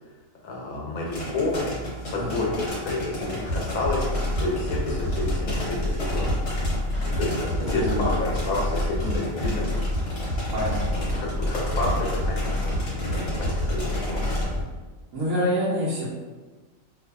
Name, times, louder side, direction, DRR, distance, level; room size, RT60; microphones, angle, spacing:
voice 1, 0.4-1.7 2.1-6.4 7.0-9.7 10.9-14.2, left 2 dB, 85° left, -3 dB, 1.1 m, -30 dB
sound 1, 1.1-14.4, equal, 60° left, 1.0 m, -34 dB
voice 2, 2.2-2.5 7.6-8.2 9.0-9.7 10.5-11.3 15.1-16.1, equal, 75° right, -8 dB, 1.0 m, -28 dB
sound 2, 3.5-14.6, left 1 dB, 35° left, 0.9 m, -28 dB
2.6 x 2.3 x 2.3 m, 1.3 s
omnidirectional pair, 1.4 m